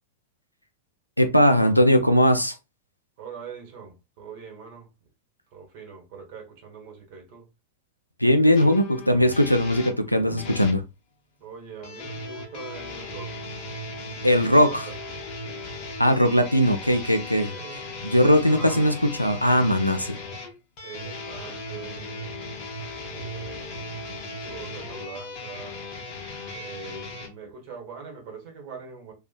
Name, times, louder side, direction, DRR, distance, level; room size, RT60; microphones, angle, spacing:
voice 1, 1.2-2.6 8.2-10.8 14.2-14.9 16.0-17.5 18.0-20.2, equal, 90° left, 0.4 m, -19 dB
voice 2, 3.2-4.9 5.5-7.5 11.4-13.4 14.2-15.6 17.5-19.0 20.8-22.3 23.1-25.8 26.5-29.1, right 5 dB, 45° right, 1.1 m, -42 dB
sound 1, 8.5-10.8 11.8-27.3, left 2 dB, 40° left, 0.9 m, -37 dB
2.7 x 2.4 x 2.4 m
figure-of-eight pair, 90°, 0 cm